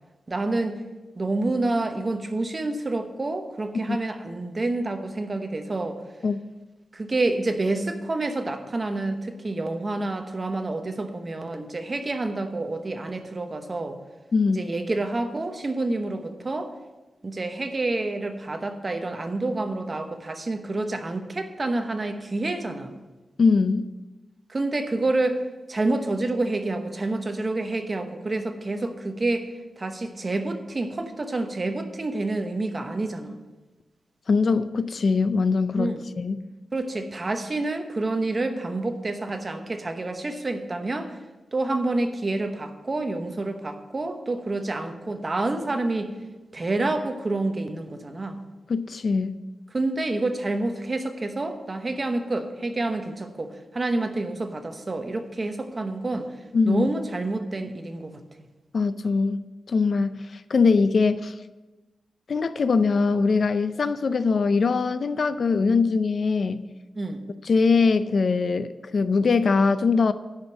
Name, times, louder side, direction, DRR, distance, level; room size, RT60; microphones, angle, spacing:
voice 1, 0.3-0.8 1.2-6.0 6.9-14.0 14.5-16.7 17.2-22.9 24.5-25.4 25.7-29.5 29.8-33.4 35.8-36.0 36.7-41.2 41.5-46.1 46.5-48.4 49.7-56.3 56.7-58.1 67.0-67.2, right 2 dB, 35° right, 6 dB, 1.0 m, -28 dB
voice 2, 23.4-23.9 34.3-36.4 48.7-49.4 56.5-56.9 58.7-59.4 59.7-61.3 62.3-66.7 67.4-70.1, left 4 dB, 55° left, 13 dB, 0.4 m, -22 dB
10.0 x 5.2 x 7.3 m, 1.2 s
wide cardioid pair, 110°, 0 cm